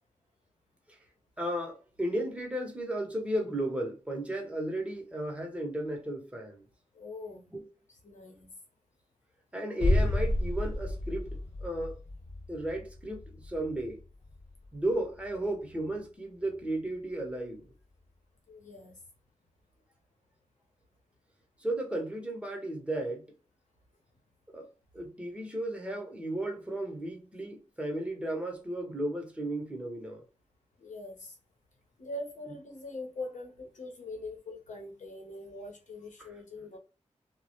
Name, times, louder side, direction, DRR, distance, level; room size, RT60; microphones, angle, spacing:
voice 1, 1.4-6.6 7.5-7.6 9.5-12.0 12.5-14.0 14.7-17.7 21.6-23.3 24.5-24.7 24.9-30.2 32.5-32.6 36.2-36.3, right 1 dB, 10° right, 0.8 m, -34 dB
voice 2, 6.9-7.4 8.0-8.5 18.5-19.0 30.8-31.4 32.0-36.8, left 2 dB, 85° left, 0.8 m, -42 dB
sound 1, 9.8-15.5 15.8-15.9, left 1 dB, 45° left, 1.1 m, -32 dB
2.2 x 2.1 x 2.8 m
cardioid pair, 60°, 12 cm